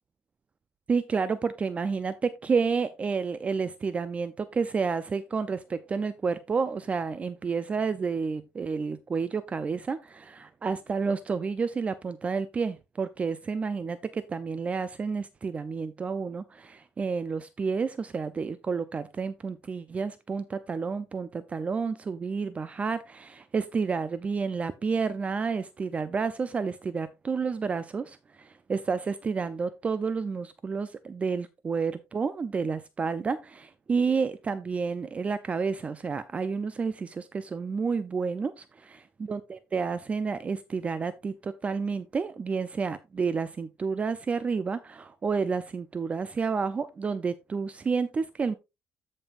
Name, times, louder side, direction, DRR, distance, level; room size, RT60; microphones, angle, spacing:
voice 1, 0.9-48.5, right 5 dB, 25° right, 0.5 m, -30 dB
14.0 x 5.4 x 2.5 m
cardioid pair, 130°, 5 cm